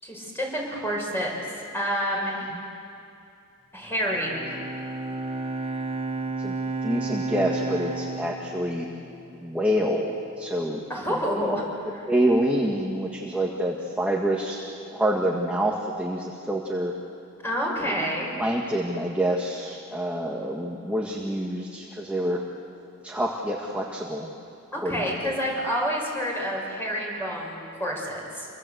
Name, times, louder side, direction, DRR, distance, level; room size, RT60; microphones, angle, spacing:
voice 1, 0.0-1.3 1.7-2.5 3.7-4.6 10.9-11.7 11.9-12.1 17.4-18.3 24.7-28.5, equal, 10° left, -2 dB, 6.3 m, -28 dB
Bowed string instrument, 4.0-9.4, right 3 dB, 25° right, 1.3 m, -32 dB
voice 2, 6.8-8.9 9.4-10.8 11.3-11.4 12.1-14.6 14.9-16.9 18.4-22.4 23.0-24.3 24.8-25.3, right 1 dB, 5° right, -1 dB, 1.6 m, -27 dB
27.5 x 24.0 x 8.0 m, 2.6 s
head